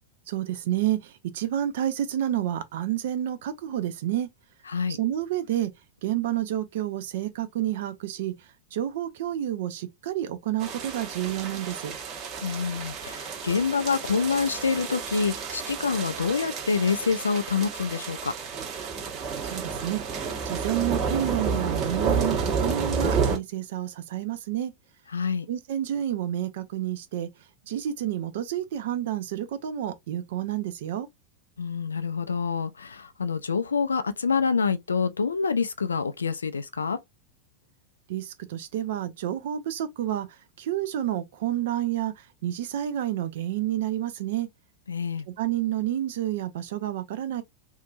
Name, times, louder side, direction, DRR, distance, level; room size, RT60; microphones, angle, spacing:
voice 1, 0.3-4.3 5.0-5.7 6.0-8.3 8.7-11.9 19.5-20.0 20.4-24.7 25.5-27.3 27.7-31.1 38.1-40.3 40.6-42.1 42.4-44.5 45.4-47.4, right 12 dB, 55° right, 0.5 m, -29 dB
voice 2, 4.7-5.0 12.4-18.3 25.1-25.5 31.6-37.0 44.9-45.3, left 5 dB, 75° left, 0.4 m, -27 dB
sound 1, 10.6-23.4, right 5 dB, 35° right, 1.2 m, -30 dB
2.8 x 2.5 x 2.4 m
figure-of-eight pair, 90°, 0 cm